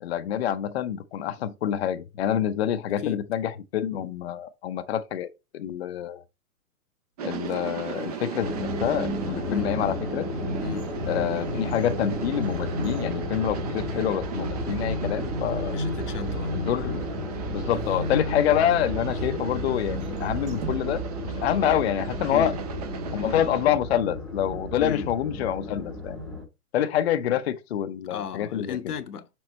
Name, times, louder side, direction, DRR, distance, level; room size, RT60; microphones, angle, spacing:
voice 1, 0.0-6.2 7.2-10.3 11.1-15.8 16.5-17.0 17.5-21.0 21.4-22.5 23.1-26.2 26.7-28.8, left 10 dB, 45° left, 0.6 m, -27 dB
sound 1, 7.2-23.7, right 7 dB, 25° right, 0.6 m, -37 dB
sound 2, 7.3-9.0 9.6-9.7 10.3-14.1 14.4-14.5 15.3-15.7 17.7-19.0 19.8-21.4 21.6-21.7, right 5 dB, 45° right, 1.6 m, -46 dB
sound 3, 8.4-26.4, left 1 dB, ahead, 1.0 m, -32 dB
voice 2, 15.7-16.5 22.3-22.5 24.8-25.1 28.1-29.3, left 8 dB, 90° left, 1.0 m, -34 dB
6.2 x 3.9 x 4.1 m
hypercardioid pair, 155°, 45 cm